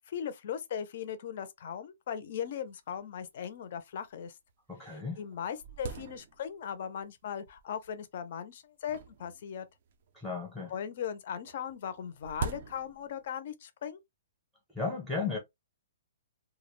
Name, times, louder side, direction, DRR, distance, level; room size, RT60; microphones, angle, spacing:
voice 1, 0.1-4.4 4.8-9.7 10.7-14.0, left 8 dB, 40° left, 0.4 m, -38 dB
sound 1, 2.7-2.8 3.0-3.1 3.8-3.9 4.5-4.6 4.9-6.7 7.5-7.9 8.8-10.2 11.4-13.2, right 5 dB, 40° right, 0.3 m, -42 dB
voice 2, 4.7-5.2 10.1-10.7 14.7-15.4, left 4 dB, ahead, 0.6 m, -34 dB
2.3 x 2.0 x 3.0 m
hypercardioid pair, 175°, 0 cm